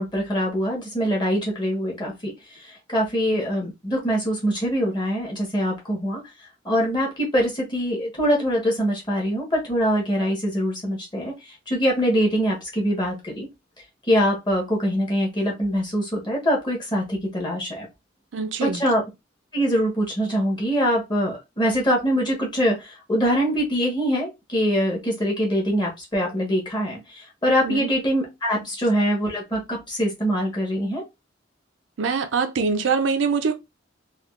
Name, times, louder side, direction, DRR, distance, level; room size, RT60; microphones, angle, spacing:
voice 1, 0.0-2.3 2.6-6.2 6.6-11.3 11.7-13.5 14.1-17.9 18.6-19.0 19.5-31.0, equal, 25° left, 1.1 m, -23 dB
voice 2, 18.3-18.8 27.6-27.9 32.0-33.5, right 5 dB, 80° right, 0.5 m, -23 dB
3.6 x 2.3 x 2.3 m
head